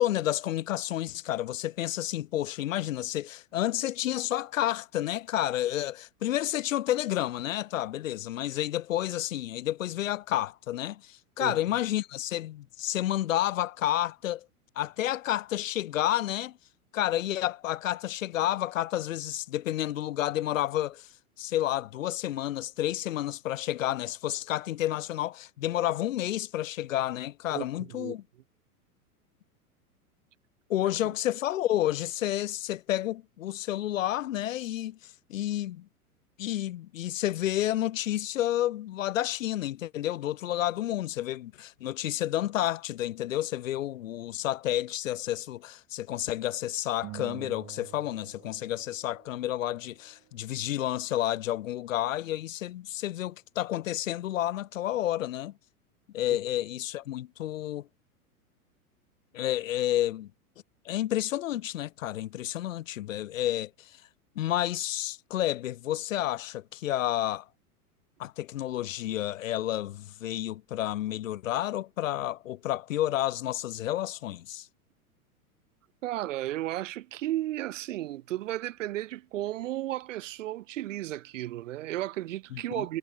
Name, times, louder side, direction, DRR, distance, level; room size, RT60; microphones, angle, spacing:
voice 1, 0.0-14.5 14.8-16.6 16.9-21.1 21.4-28.2 30.7-35.9 36.4-55.5 56.1-57.9 59.3-60.3 60.8-63.9 64.4-67.5 68.2-74.7 82.5-82.9, left 13 dB, 60° left, 0.8 m, -30 dB
voice 2, 27.5-28.1 76.0-83.0, right 15 dB, 55° right, 0.6 m, -34 dB
sound 1, 47.0-49.6, right 18 dB, 30° right, 2.3 m, -46 dB
figure-of-eight pair, 95°, 45 cm